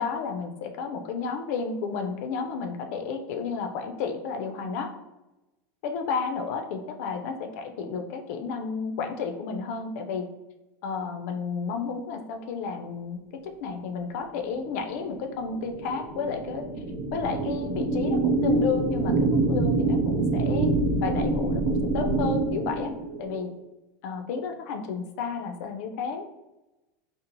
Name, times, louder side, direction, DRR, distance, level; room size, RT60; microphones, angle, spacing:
voice 1, 0.0-4.9 5.8-10.3 10.8-13.2 13.6-16.6 17.1-20.7 21.0-22.9 23.2-23.5 24.0-26.2, left 5 dB, 65° left, 5 dB, 0.4 m, -32 dB
sound 1, 14.6-23.4, right 2 dB, 80° right, 0.5 m, -26 dB
2.6 x 2.0 x 2.9 m, 0.98 s
supercardioid pair, 150°, 9 cm